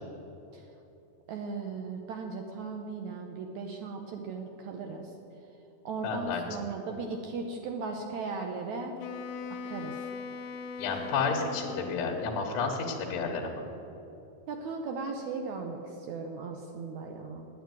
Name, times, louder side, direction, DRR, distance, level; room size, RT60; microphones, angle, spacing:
voice 1, 1.3-5.1 5.9-8.9 9.6-10.0 10.9-11.0 14.5-17.5, right 4 dB, 75° right, 3 dB, 1.8 m, -37 dB
voice 2, 6.0-6.4 10.8-13.6, left 4 dB, 60° left, 0 dB, 2.2 m, -31 dB
Wind instrument woodwind instrument, 9.0-12.6, left 5 dB, 80° left, 1.8 m, -40 dB
9.3 x 9.0 x 9.3 m, 2.9 s
omnidirectional pair, 4.1 m